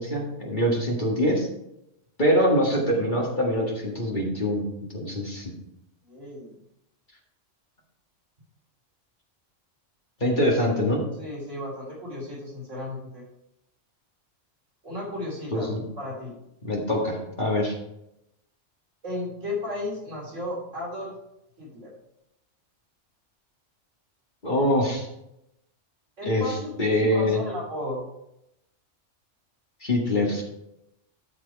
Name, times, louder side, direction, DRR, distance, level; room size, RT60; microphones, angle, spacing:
voice 1, 0.0-1.5 2.2-4.7 4.9-5.5 10.2-11.0 15.5-15.8 16.6-17.7 24.4-25.1 26.2-27.4 29.8-30.4, equal, 40° left, -2 dB, 2.0 m, -24 dB
voice 2, 6.0-6.5 11.2-13.3 14.8-16.3 19.0-21.2 21.6-21.9 26.2-26.7 27.0-28.0, left 1 dB, 85° right, -5 dB, 3.6 m, -34 dB
13.0 x 4.8 x 4.7 m, 0.83 s
omnidirectional pair, 1.3 m